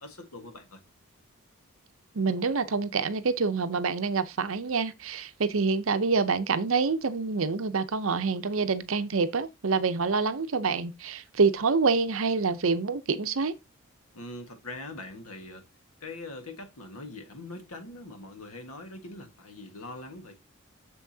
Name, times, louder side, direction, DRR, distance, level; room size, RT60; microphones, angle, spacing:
voice 1, 0.0-0.8 14.1-15.6 16.0-20.3, left 2 dB, 90° left, 1.6 m, -42 dB
voice 2, 2.1-13.5, right 4 dB, 65° right, 0.7 m, -26 dB
7.3 x 6.9 x 2.7 m
head